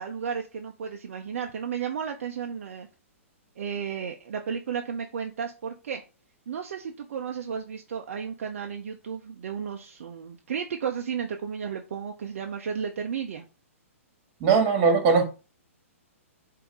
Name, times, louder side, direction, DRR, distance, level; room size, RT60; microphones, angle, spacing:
voice 1, 0.0-2.9 3.6-6.0 6.5-13.4, right 7 dB, 65° right, 0.8 m, -33 dB
voice 2, 14.4-15.2, right 5 dB, 35° right, 2.2 m, -20 dB
7.8 x 2.9 x 4.8 m
hypercardioid pair, 120°, 8 cm